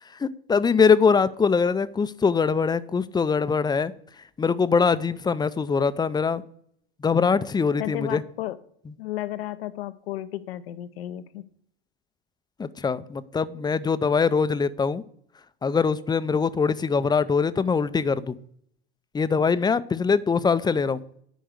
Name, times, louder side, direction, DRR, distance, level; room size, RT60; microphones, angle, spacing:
voice 1, 0.2-3.9 4.4-6.4 7.0-8.2 12.6-15.0 15.6-18.4 19.1-21.0, left 5 dB, 15° left, 15 dB, 0.5 m, -22 dB
voice 2, 7.8-8.6 9.0-11.4, left 14 dB, 80° left, 13 dB, 0.7 m, -33 dB
10.0 x 4.6 x 6.6 m, 0.66 s
hypercardioid pair, 85°, 30 cm